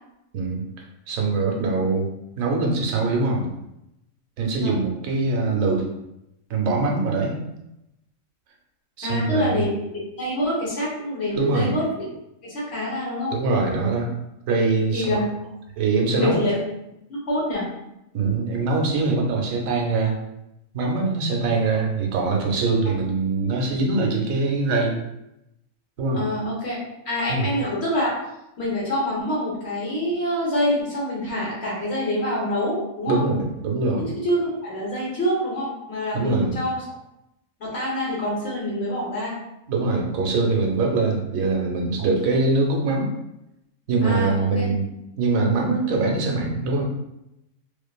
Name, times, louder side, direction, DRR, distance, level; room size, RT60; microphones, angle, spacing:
voice 1, 1.1-2.1 2.4-3.5 4.4-5.9 6.5-7.4 9.0-9.6 11.3-11.8 13.3-14.1 14.5-15.2 15.8-16.4 18.1-20.2 20.7-25.0 26.0-26.2 27.3-27.5 33.1-34.0 36.1-36.6 39.7-43.1 43.9-44.9 45.2-46.8, right 3 dB, 80° right, 0 dB, 1.0 m, -23 dB
voice 2, 9.0-9.8 10.2-12.0 12.4-13.3 14.9-15.2 16.1-16.6 17.1-17.7 26.1-26.8 27.0-28.1 28.6-33.2 34.0-36.8 37.6-39.4 44.0-44.7, left 1 dB, 55° left, -5 dB, 1.0 m, -26 dB
2.4 x 2.4 x 2.2 m, 0.86 s
omnidirectional pair, 1.4 m